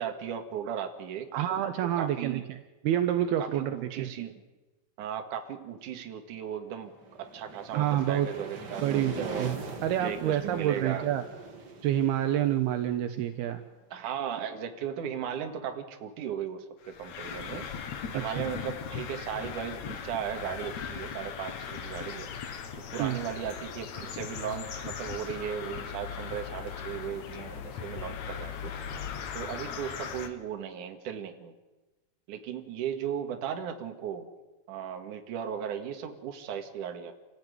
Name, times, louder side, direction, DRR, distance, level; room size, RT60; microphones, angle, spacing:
voice 1, 0.0-1.3 1.8-2.5 3.4-4.4 5.0-6.9 7.2-9.7 10.0-11.0 13.9-17.7 18.1-22.3 22.9-28.7 29.3-31.5 32.3-34.3 34.7-37.1, right 8 dB, 55° right, 5 dB, 3.1 m, -36 dB
voice 2, 1.3-2.6 2.8-4.1 7.7-8.3 8.8-9.6 9.8-11.2 11.8-13.6 18.1-18.5 23.0-23.2, right 11 dB, 75° right, 8 dB, 2.9 m, -28 dB
sound 1, 6.8-13.5, right 3 dB, 40° right, 1.7 m, -42 dB
sound 2, 16.8-30.3, left 7 dB, 55° left, 2.4 m, -39 dB
28.0 x 15.5 x 9.7 m, 1.2 s
omnidirectional pair, 4.7 m